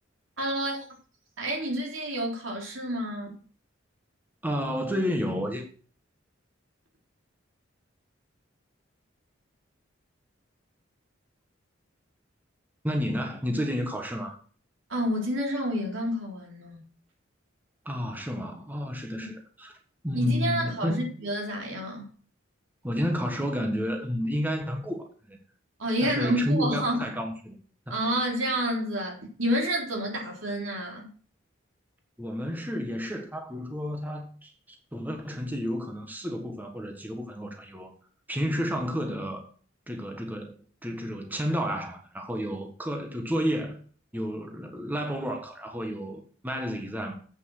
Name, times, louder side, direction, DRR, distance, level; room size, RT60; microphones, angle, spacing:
voice 1, 0.4-0.8 1.4-3.4 14.9-16.8 19.1-19.3 20.1-22.1 25.8-27.1 27.9-31.1, equal, 80° right, 3.6 m, -29 dB
voice 2, 4.4-5.6 12.8-14.4 17.8-19.8 20.0-21.1 22.8-25.4 26.0-27.6 27.9-28.0 32.2-37.9 38.3-39.4 39.9-43.8 44.1-47.1, equal, 10° right, 1.3 m, -31 dB
8.2 x 7.1 x 6.3 m
head